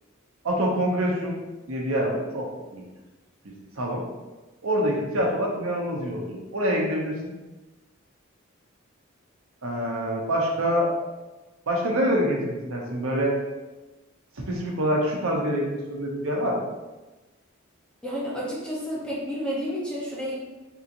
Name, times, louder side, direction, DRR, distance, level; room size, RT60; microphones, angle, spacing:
voice 1, 0.4-1.4 1.7-2.5 2.7-2.8 3.8-4.0 4.6-7.3 9.6-10.9 11.7-13.3 14.5-16.6, equal, 85° right, -1 dB, 0.8 m, -25 dB
voice 2, 18.0-20.4, equal, 5° left, -6 dB, 0.7 m, -30 dB
3.6 x 2.8 x 2.6 m, 1.1 s
head